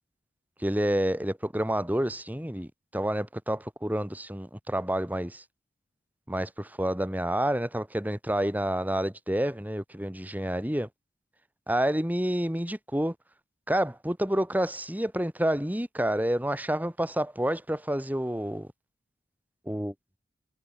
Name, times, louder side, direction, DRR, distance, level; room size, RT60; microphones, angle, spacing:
voice 1, 0.6-5.4 6.3-10.9 11.7-13.1 13.7-18.7 19.7-19.9, right 1 dB, 10° right, 3.1 m, -29 dB
head